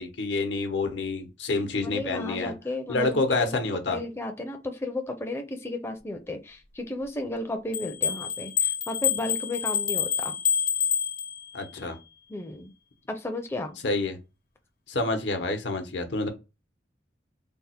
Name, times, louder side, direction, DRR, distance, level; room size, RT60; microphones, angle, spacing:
voice 1, 0.0-2.5 2.9-4.0 11.5-12.0 13.8-14.2 14.9-16.3, left 3 dB, 90° left, 0.8 m, -28 dB
voice 2, 1.8-3.6 3.9-10.4 12.3-12.7 13.1-13.7, left 2 dB, 15° left, 0.4 m, -34 dB
sound 1, 7.7-11.7, left 8 dB, 55° left, 0.6 m, -27 dB
3.4 x 2.0 x 4.2 m
head